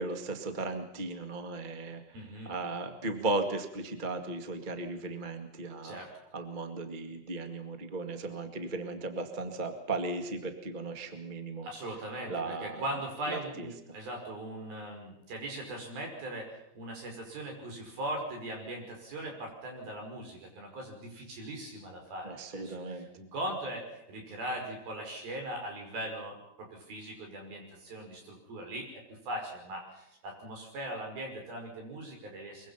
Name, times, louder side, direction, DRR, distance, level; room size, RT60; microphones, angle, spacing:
voice 1, 0.0-2.0 2.4-6.0 6.3-11.7 12.3-12.8 13.3-13.7 22.2-23.1, right 2 dB, 25° right, 6 dB, 1.0 m, -36 dB
voice 2, 2.1-2.6 5.8-6.1 11.6-32.7, right 1 dB, 70° right, 2 dB, 7.2 m, -40 dB
23.5 x 23.0 x 5.8 m, 0.83 s
omnidirectional pair, 4.4 m